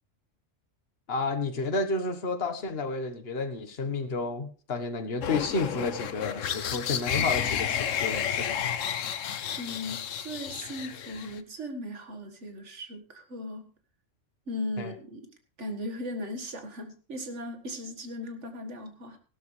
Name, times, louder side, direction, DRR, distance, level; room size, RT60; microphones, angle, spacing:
voice 1, 1.1-8.6 14.8-14.9, left 3 dB, 55° left, 7 dB, 1.6 m, -31 dB
sound 1, 5.2-11.4, left 8 dB, 85° left, 1.2 m, -31 dB
voice 2, 9.6-13.7 14.5-15.3 15.6-19.2, left 1 dB, 70° right, 6 dB, 2.1 m, -37 dB
16.5 x 13.0 x 3.3 m, 0.39 s
omnidirectional pair, 1.3 m